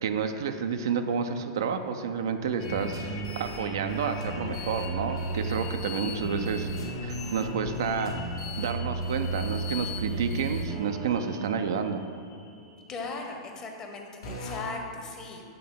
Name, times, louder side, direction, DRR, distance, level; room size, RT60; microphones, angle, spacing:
voice 1, 0.0-6.7 7.0-8.1 8.6-12.0, right 6 dB, 70° right, 8 dB, 0.3 m, -30 dB
sound 1, 2.6-13.3 14.2-14.6, right 1 dB, 75° left, 1.3 m, -34 dB
voice 2, 12.9-15.4, left 3 dB, 30° left, 2 dB, 0.8 m, -38 dB
7.5 x 3.3 x 3.8 m, 2.2 s
figure-of-eight pair, 95°, 2 cm